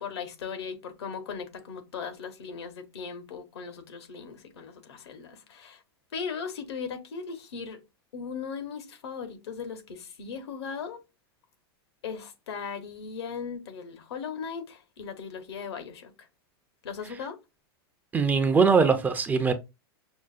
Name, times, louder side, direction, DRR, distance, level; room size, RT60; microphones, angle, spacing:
voice 1, 0.0-5.8 6.1-7.8 8.1-11.0 12.0-16.3 16.8-17.4, left 6 dB, 85° left, 1.0 m, -38 dB
voice 2, 18.1-19.5, right 5 dB, 15° right, 0.4 m, -21 dB
6.0 x 2.1 x 2.5 m
supercardioid pair, 135°, 13 cm